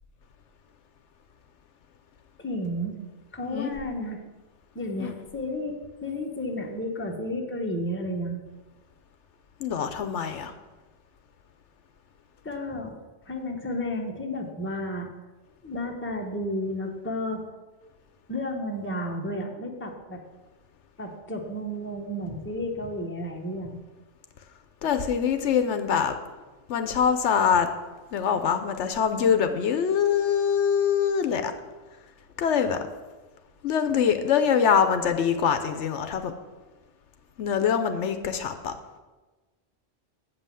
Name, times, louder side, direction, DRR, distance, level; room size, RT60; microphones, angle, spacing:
voice 1, 2.4-3.0 3.3-4.2 4.7-8.4 12.4-13.0 13.2-15.1 15.6-17.4 18.3-20.2 21.0-23.8, left 1 dB, 10° left, 2 dB, 0.9 m, -32 dB
voice 2, 9.6-10.5 24.8-26.1 26.7-27.7 28.1-31.5 32.4-32.8 33.6-36.3 37.4-38.7, left 7 dB, 75° left, 8 dB, 1.0 m, -24 dB
7.5 x 5.5 x 7.5 m, 1.2 s
omnidirectional pair, 1.2 m